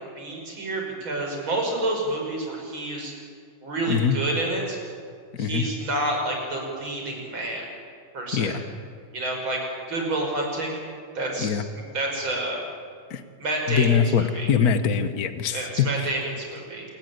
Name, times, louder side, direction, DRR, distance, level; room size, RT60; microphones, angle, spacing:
voice 1, 0.2-3.1 3.6-4.8 5.4-7.6 8.1-8.6 9.1-10.8 11.1-12.6 13.4-14.5 15.5-16.8, right 2 dB, 80° right, 1 dB, 6.1 m, -29 dB
voice 2, 5.3-5.6 8.3-8.6 11.4-11.6 13.1-13.2 13.7-15.9, left 7 dB, 50° left, 10 dB, 1.6 m, -23 dB
28.0 x 15.0 x 9.5 m, 2.1 s
omnidirectional pair, 2.2 m